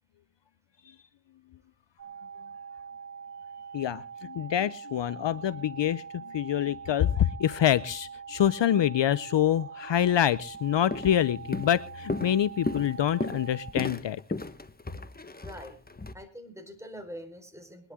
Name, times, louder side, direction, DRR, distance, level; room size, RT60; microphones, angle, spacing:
sound 1, 2.0-13.7, right 6 dB, 30° right, 2.7 m, -44 dB
voice 1, 3.7-14.2, left 10 dB, 60° left, 17 dB, 0.7 m, -26 dB
Walk footsteps, 10.4-10.6 10.9-11.2 11.5-16.1, left 3 dB, 20° left, 1.3 m, -34 dB
voice 2, 15.3-15.8 16.1-17.9, equal, 5° right, 5 dB, 4.5 m, -44 dB
21.5 x 11.5 x 3.7 m, 0.34 s
cardioid pair, 65°, 48 cm